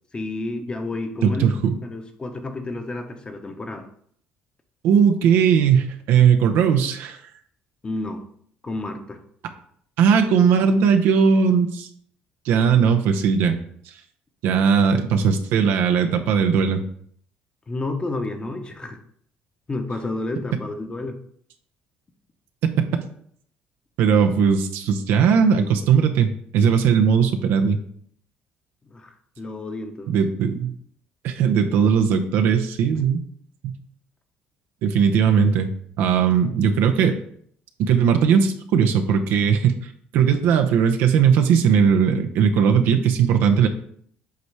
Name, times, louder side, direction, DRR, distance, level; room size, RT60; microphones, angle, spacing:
voice 1, 0.1-3.9 7.8-8.2 8.6-9.2 17.7-19.0 19.7-21.2 28.9-30.1 32.9-33.0, left 2 dB, 25° left, 6 dB, 1.0 m, -31 dB
voice 2, 1.2-1.8 4.8-7.2 10.0-11.9 12.4-13.6 14.4-16.8 24.0-27.8 30.1-30.8 31.2-33.2 33.6-33.7 34.8-35.7 36.0-37.2 37.8-39.8 40.1-43.7, right 7 dB, 80° right, 6 dB, 0.7 m, -18 dB
8.2 x 3.2 x 4.7 m, 0.63 s
cardioid pair, 100°, 4 cm